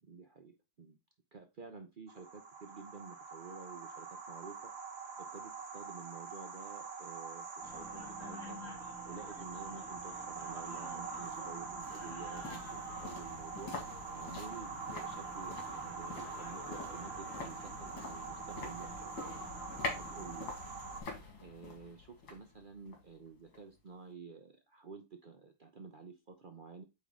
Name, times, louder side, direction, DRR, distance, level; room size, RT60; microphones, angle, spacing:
voice 1, 0.0-1.0 1.3-4.7 5.2-8.6 9.1-13.7 14.1-19.1 19.9-20.5 21.4-26.8, right 5 dB, 75° right, 5 dB, 0.4 m, -51 dB
sound 1, 2.1-21.0, right 5 dB, 40° right, 1.1 m, -45 dB
sound 2, 7.6-20.5, left 1 dB, 45° left, 1.9 m, -51 dB
sound 3, 10.6-23.8 24.1-24.2, left 3 dB, 80° left, 2.7 m, -47 dB
8.9 x 3.7 x 3.7 m, 0.25 s
omnidirectional pair, 2.0 m